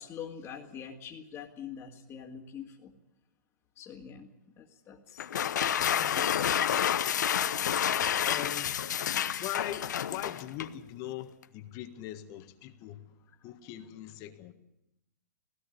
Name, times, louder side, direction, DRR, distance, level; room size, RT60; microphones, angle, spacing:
voice 1, 0.0-2.9 3.8-4.3 4.6-6.3, left 8 dB, 20° left, -3 dB, 2.3 m, -45 dB
sound 1, 5.2-10.8, left 9 dB, 75° left, 1.0 m, -29 dB
voice 2, 7.8-8.8 9.4-13.0 13.4-14.5, left 13 dB, 35° left, 6 dB, 1.6 m, -41 dB
18.0 x 17.0 x 9.8 m, 0.90 s
hypercardioid pair, 130°, 10 cm